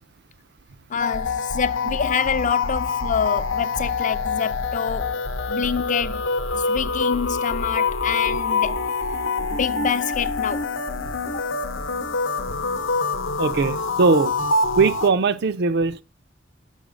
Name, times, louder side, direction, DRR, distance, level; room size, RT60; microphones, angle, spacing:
voice 1, 0.9-6.2 6.5-8.8 9.4-10.7 11.3-11.4, left 7 dB, 40° left, 0.5 m, -27 dB
sound 1, 1.0-15.1, left 4 dB, 70° left, 0.8 m, -25 dB
voice 2, 13.4-14.3 14.7-16.0, right 4 dB, 55° right, 0.5 m, -20 dB
6.4 x 5.6 x 5.1 m
head